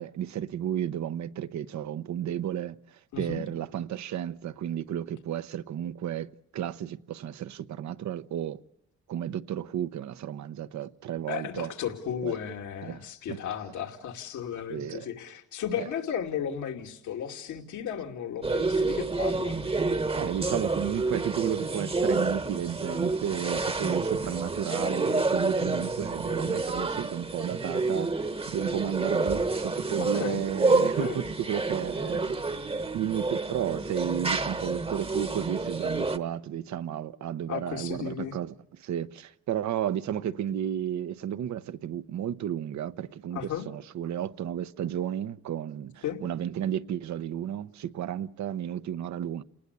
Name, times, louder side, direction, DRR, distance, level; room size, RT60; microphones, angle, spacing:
voice 1, 0.0-2.8 3.2-8.6 9.1-11.7 12.2-12.4 12.8-13.0 13.3-13.4 14.7-15.1 15.8-15.9 20.2-32.2 32.9-38.5 38.8-49.4, right 10 dB, 65° right, 0.9 m, -33 dB
voice 2, 11.3-19.6 25.6-25.9 30.0-30.4 30.8-31.2 37.5-38.3 43.3-43.7 46.0-46.2, left 9 dB, 75° left, 2.6 m, -34 dB
sound 1, 18.4-36.2, right 3 dB, 20° right, 1.1 m, -29 dB
29.0 x 19.5 x 8.2 m
cardioid pair, 90°, 30 cm